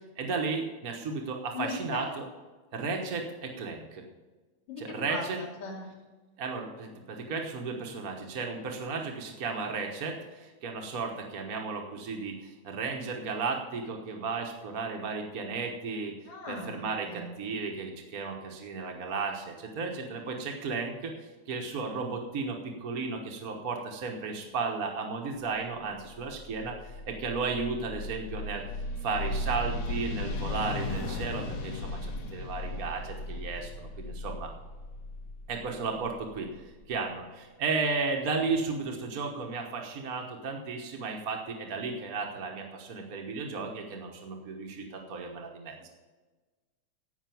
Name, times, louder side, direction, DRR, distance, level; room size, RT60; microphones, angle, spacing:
voice 1, 0.2-2.2 2.7-4.0 4.8-5.4 6.4-16.1 16.5-21.1 21.5-28.6 29.0-32.0 32.3-34.5 35.5-45.9, right 4 dB, 55° right, 2 dB, 1.0 m, -34 dB
voice 2, 1.5-2.2 4.7-4.8 5.1-5.8 16.3-17.3, left 3 dB, 70° left, -3 dB, 3.8 m, -38 dB
sound 1, 26.3-36.9, left 2 dB, 85° left, 3.1 m, -36 dB
15.5 x 5.7 x 7.0 m, 1.3 s
omnidirectional pair, 3.3 m